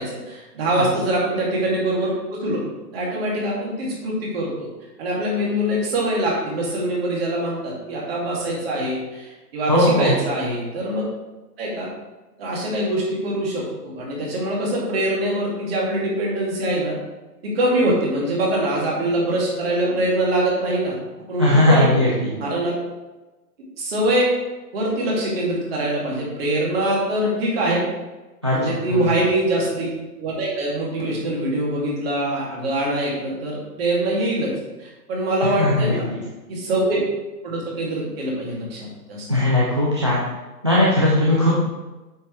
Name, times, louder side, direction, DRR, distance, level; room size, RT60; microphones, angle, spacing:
voice 1, 0.0-2.6 2.9-4.7 5.0-11.0 11.6-11.9 12.4-17.0 17.4-21.0 21.3-22.0 22.4-22.8 23.8-24.3 24.7-27.9 28.5-34.5 34.8-36.1 36.5-37.0 37.4-39.2, right 1 dB, 35° right, -4 dB, 2.7 m, -23 dB
voice 2, 9.7-10.2 21.4-22.3 28.4-29.1 35.4-36.2 39.3-40.2 40.6-41.5, left 1 dB, 20° right, -5 dB, 0.4 m, -18 dB
8.2 x 6.8 x 3.3 m, 1.1 s
figure-of-eight pair, 135°, 49 cm